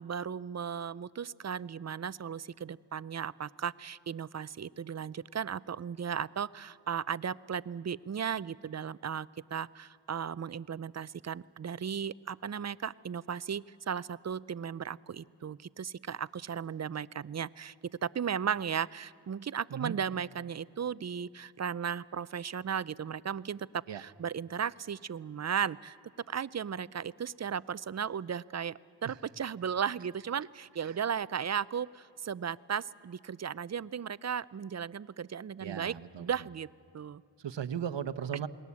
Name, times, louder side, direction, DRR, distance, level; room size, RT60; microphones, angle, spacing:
voice 1, 0.0-26.0 26.3-35.9 36.2-36.7 36.9-37.2, right 7 dB, 40° right, 19 dB, 0.5 m, -36 dB
voice 2, 35.6-36.3 37.4-38.5, right 8 dB, 70° right, 12 dB, 1.0 m, -37 dB
29.0 x 20.0 x 8.4 m, 2.7 s
wide cardioid pair, 95°, 44 cm